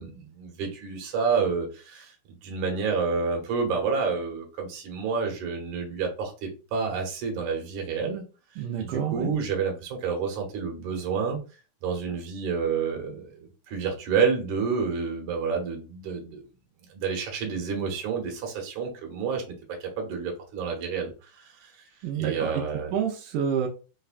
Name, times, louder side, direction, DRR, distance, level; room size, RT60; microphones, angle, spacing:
voice 1, 0.0-8.2 8.5-11.4 11.8-16.4 16.9-19.4 19.7-21.8 22.2-22.9, right 5 dB, 70° right, 1 dB, 2.3 m, -29 dB
voice 2, 8.6-9.3 22.0-22.6 22.9-23.7, right 8 dB, 85° right, 1 dB, 2.2 m, -28 dB
5.5 x 2.1 x 2.5 m, 0.33 s
omnidirectional pair, 3.7 m